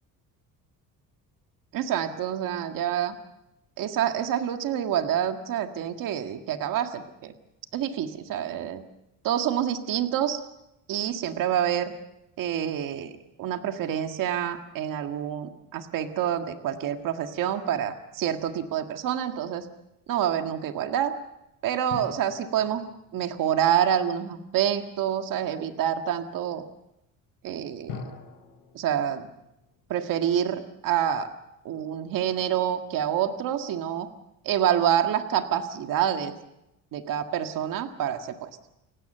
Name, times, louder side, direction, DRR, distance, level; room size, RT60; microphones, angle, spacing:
voice 1, 1.7-3.1 3.8-7.3 7.7-8.8 9.2-10.4 10.9-11.9 12.4-19.7 20.1-21.1 21.6-22.9 23.1-26.6 27.4-28.0 28.8-29.3 29.9-31.3 31.7-34.1 34.5-36.3 36.9-38.5, right 10 dB, 65° right, 6 dB, 1.8 m, -27 dB
sound 1, 21.9-24.5 27.9-30.5 30.8-30.9, left 6 dB, 90° left, 5.8 m, -45 dB
29.5 x 16.0 x 6.7 m, 0.87 s
cardioid pair, 135°, 35 cm